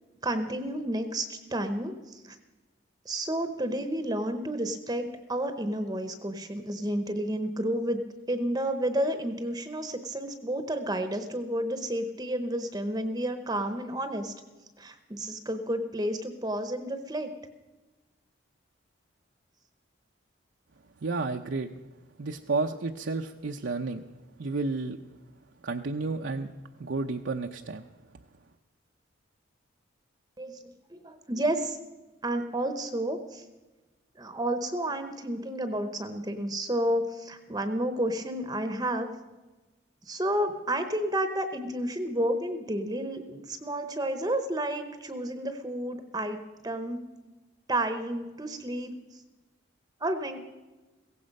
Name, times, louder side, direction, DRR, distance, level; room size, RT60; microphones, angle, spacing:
voice 1, 0.2-2.4 3.0-8.0 8.3-14.3 14.8-17.3 30.4-31.8 32.2-33.4 34.2-39.1 40.0-47.0 47.7-49.2 50.0-50.4, right 1 dB, 20° right, 8 dB, 0.8 m, -31 dB
voice 2, 21.0-21.7 22.2-24.0 24.4-25.0 25.6-26.5 26.8-27.9, right 3 dB, 65° right, 3 dB, 0.6 m, -31 dB
16.5 x 15.5 x 5.3 m, 1.1 s
head